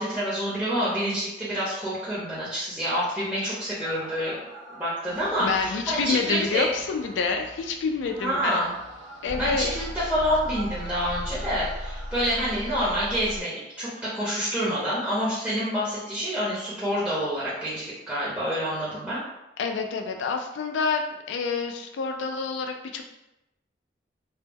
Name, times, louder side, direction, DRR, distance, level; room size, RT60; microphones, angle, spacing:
voice 1, 0.0-4.3 4.7-6.7 8.2-8.7 9.4-19.2, equal, 10° right, -10 dB, 0.6 m, -27 dB
sound 1, 3.8-13.4, equal, 75° right, 0.6 m, -38 dB
voice 2, 5.4-8.6 9.2-9.7 19.6-23.0, left 5 dB, 85° left, 4 dB, 0.3 m, -28 dB
2.0 x 2.0 x 3.3 m, 0.91 s
head